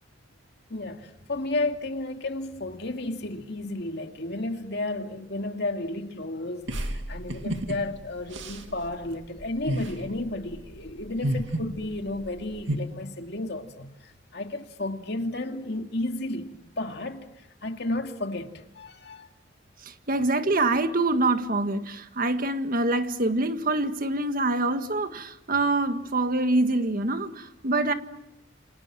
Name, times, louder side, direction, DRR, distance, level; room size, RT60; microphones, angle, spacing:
voice 1, 0.7-19.3 20.1-20.3, left 2 dB, 60° left, 2.4 m, -33 dB
sound 1, 6.7-12.8, right 1 dB, 85° right, 2.4 m, -32 dB
voice 2, 19.8-27.9, right 2 dB, 50° right, 1.6 m, -25 dB
28.5 x 26.5 x 7.6 m
head